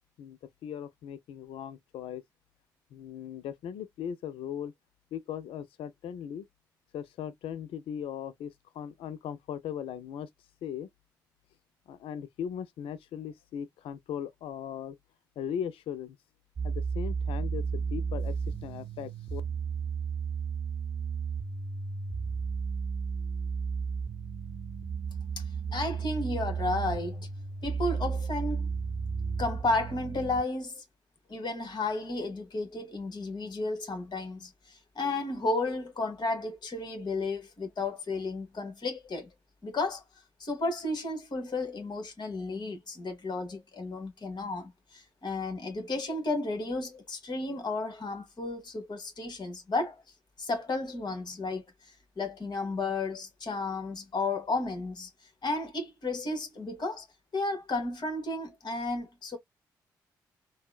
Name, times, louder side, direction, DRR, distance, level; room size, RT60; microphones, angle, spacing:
voice 1, 0.2-2.2 2.9-4.7 5.1-6.5 6.9-10.3 10.6-10.9 11.9-15.0 15.4-16.2 16.6-18.3 18.6-19.4, left 9 dB, 65° left, 0.4 m, -38 dB
sound 1, 16.6-30.4, right 5 dB, 40° right, 0.6 m, -33 dB
voice 2, 25.7-27.3 27.6-28.7 29.4-30.8 31.3-39.3 39.6-40.0 40.4-50.0 50.4-55.1 55.4-57.0 57.3-59.4, left 2 dB, 45° left, 1.4 m, -33 dB
3.5 x 2.1 x 2.3 m
hypercardioid pair, 40°, 10 cm